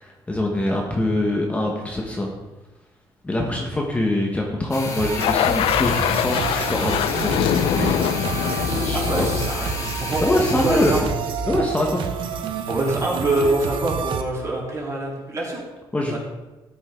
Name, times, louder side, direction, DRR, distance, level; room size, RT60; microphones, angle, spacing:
voice 1, 0.0-2.3 3.2-7.4 7.8-8.0 8.5-9.2 10.2-10.9 11.5-12.0 15.9-16.2, left 1 dB, 15° left, 0 dB, 1.5 m, -24 dB
sound 1, 4.7-11.0, left 4 dB, 35° left, 2.4 m, -32 dB
sound 2, 5.0-14.2, right 6 dB, 65° right, 1.1 m, -29 dB
sound 3, 5.1-10.5, left 10 dB, 80° left, 0.5 m, -24 dB
voice 2, 8.9-10.2 10.5-11.1 12.7-15.6 16.1-16.2, right 2 dB, 35° right, -3 dB, 3.8 m, -25 dB
13.5 x 10.0 x 3.9 m, 1.1 s
cardioid pair, 130°, 9 cm